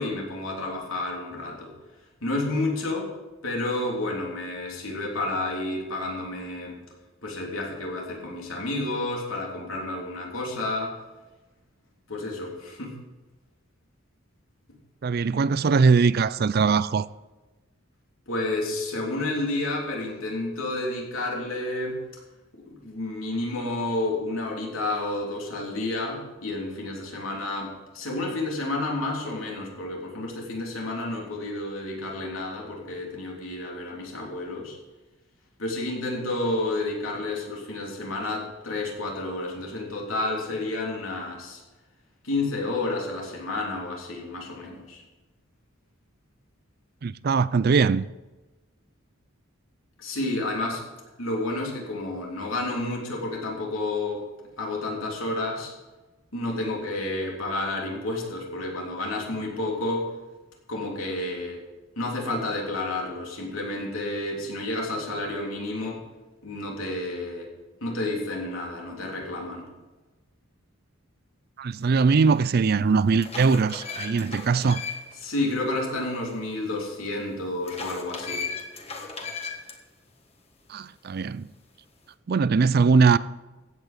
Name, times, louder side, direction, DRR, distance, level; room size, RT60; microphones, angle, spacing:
voice 1, 0.0-1.7 2.2-3.1 3.4-6.8 7.2-10.9 12.1-12.9 18.3-22.0 22.5-34.8 35.6-41.6 42.2-45.0 50.0-50.8 51.2-54.3 54.6-55.7 56.3-60.1 60.7-61.6 62.0-66.0 66.4-67.5 67.8-69.7 75.2-78.5, left 2 dB, 80° left, 3.4 m, -30 dB
voice 2, 15.0-17.1 47.0-48.0 71.6-74.8 80.7-81.5 82.3-83.2, right 5 dB, 50° right, 0.4 m, -21 dB
sound 1, 72.3-72.4 72.9-75.3 75.6-75.7 77.6-79.8, left 4 dB, 30° left, 1.5 m, -36 dB
15.5 x 8.5 x 5.2 m
head